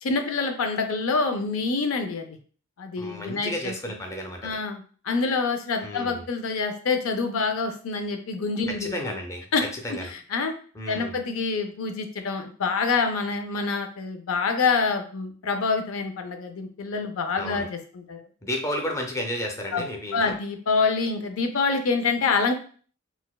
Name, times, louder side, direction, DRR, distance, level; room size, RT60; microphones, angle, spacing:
voice 1, 0.0-2.4 2.8-3.7 4.4-8.9 9.5-10.5 10.9-18.2 19.7-19.8 20.1-22.5, left 4 dB, 75° left, 5 dB, 0.5 m, -26 dB
voice 2, 3.0-4.6 5.8-6.2 8.7-9.5 9.7-10.1 10.7-11.2 17.4-17.7 18.4-20.4, left 1 dB, 15° left, 2 dB, 0.5 m, -32 dB
4.0 x 2.2 x 2.3 m, 0.43 s
head